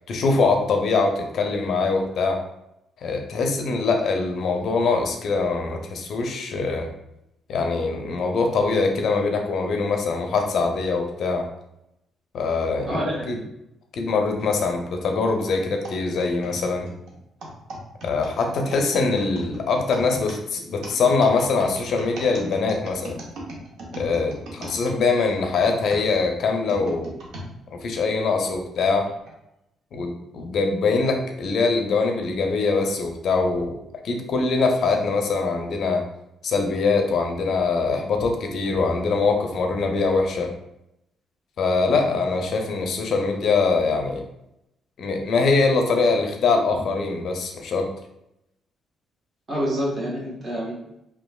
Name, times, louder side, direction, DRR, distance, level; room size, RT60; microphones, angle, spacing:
voice 1, 0.1-2.4 3.0-6.9 7.5-11.5 12.3-13.4 13.9-16.9 18.0-23.1 23.9-27.1 27.7-29.1 29.9-33.8 34.0-36.0 36.4-40.5 41.6-44.2 45.0-47.9, left 4 dB, 65° left, 3 dB, 0.4 m, -23 dB
voice 2, 12.9-13.4 49.5-50.7, equal, 40° right, -5 dB, 1.2 m, -27 dB
sound 1, 15.8-25.4 25.9-27.5 28.1-28.2 29.1-29.3, right 1 dB, 75° right, 0.7 m, -38 dB
3.0 x 2.2 x 2.2 m, 0.82 s
cardioid pair, 90°, 0 cm